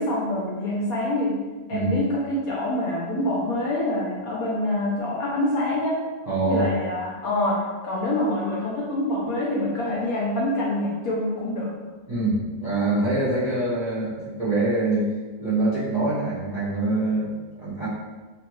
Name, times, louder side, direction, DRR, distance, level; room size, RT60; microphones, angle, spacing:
voice 1, 0.0-1.4 1.7-6.0 6.5-11.7, left 1 dB, 70° left, -5 dB, 0.8 m, -26 dB
voice 2, 6.3-6.7 12.1-15.1 15.4-17.9, right 2 dB, 50° right, -10 dB, 0.4 m, -24 dB
2.9 x 2.4 x 3.0 m, 1.3 s
omnidirectional pair, 2.0 m